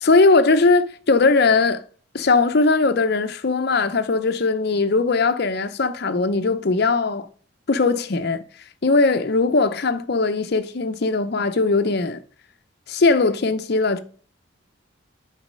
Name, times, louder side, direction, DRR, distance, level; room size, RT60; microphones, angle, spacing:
voice 1, 0.0-1.8 2.1-7.3 7.7-8.4 8.8-12.2 12.9-14.0, left 3 dB, 50° left, 0.6 m, -19 dB
9.2 x 4.0 x 5.5 m
head